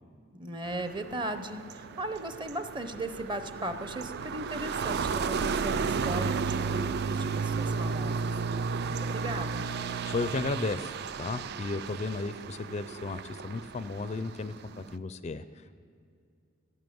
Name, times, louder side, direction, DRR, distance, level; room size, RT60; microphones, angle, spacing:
voice 1, 0.3-8.3 8.9-9.7, right 1 dB, 25° right, 9 dB, 0.7 m, -37 dB
sound 1, 0.6-14.9, right 5 dB, 50° right, 0.4 m, -33 dB
voice 2, 10.0-15.8, left 3 dB, 30° left, 12 dB, 0.4 m, -34 dB
15.5 x 9.5 x 7.8 m, 2.4 s
head